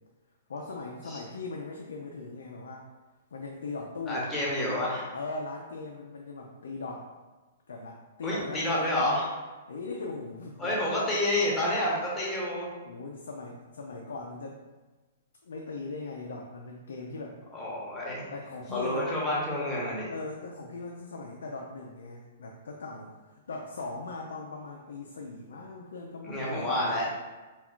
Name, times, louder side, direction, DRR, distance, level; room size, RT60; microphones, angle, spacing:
voice 1, 0.5-2.9 3.3-4.3 5.1-7.1 7.7-9.1 9.7-10.7 12.8-14.6 15.4-17.4 18.3-19.1 20.1-27.0, left 3 dB, 90° left, 0 dB, 0.3 m, -39 dB
voice 2, 4.1-5.1 8.2-9.3 10.6-12.7 17.5-18.3 18.7-20.1 26.2-27.1, left 1 dB, 10° left, -6 dB, 0.9 m, -29 dB
2.3 x 2.2 x 3.6 m, 1.2 s
hypercardioid pair, 145°, 0 cm